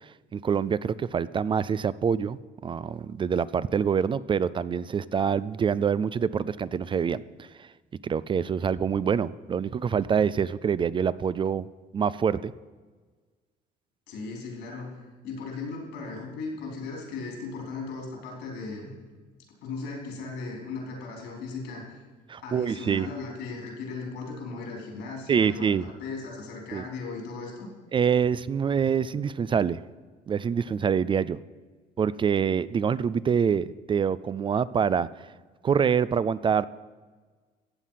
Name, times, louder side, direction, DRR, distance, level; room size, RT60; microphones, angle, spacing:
voice 1, 0.3-7.7 8.0-11.7 11.9-12.5 22.3-23.1 25.3-25.8 26.7-26.8 27.9-29.8 30.3-31.4 32.0-35.1 35.6-36.7, right 7 dB, 30° right, 18 dB, 0.3 m, -26 dB
voice 2, 14.1-14.9 15.2-19.0 19.6-21.8 22.4-27.7, left 4 dB, 85° left, 0 dB, 4.4 m, -37 dB
14.5 x 8.3 x 5.8 m, 1.4 s
cardioid pair, 110°, 17 cm